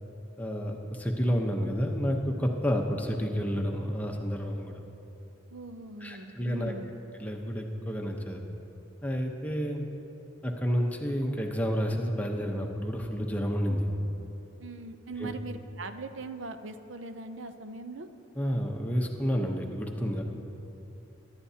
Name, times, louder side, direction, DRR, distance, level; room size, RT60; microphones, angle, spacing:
voice 1, 0.4-4.8 6.0-6.7 7.2-8.4 9.0-9.9 10.4-13.9 15.2-15.3 18.3-20.2, equal, 10° left, 1 dB, 0.8 m, -30 dB
voice 2, 5.5-6.9 14.6-18.1, right 3 dB, 75° right, 9 dB, 0.6 m, -41 dB
22.5 x 11.5 x 2.8 m, 2.9 s
head